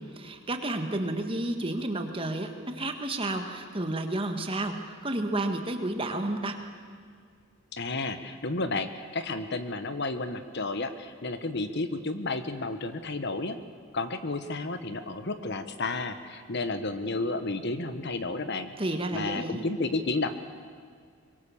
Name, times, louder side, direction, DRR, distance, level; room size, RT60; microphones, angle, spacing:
voice 1, 0.1-6.6 18.8-19.6, right 1 dB, 25° right, 5 dB, 1.7 m, -31 dB
voice 2, 7.7-13.6 13.9-18.7 19.1-20.3, left 3 dB, 50° left, 10 dB, 1.2 m, -32 dB
24.5 x 22.0 x 7.3 m, 2.1 s
head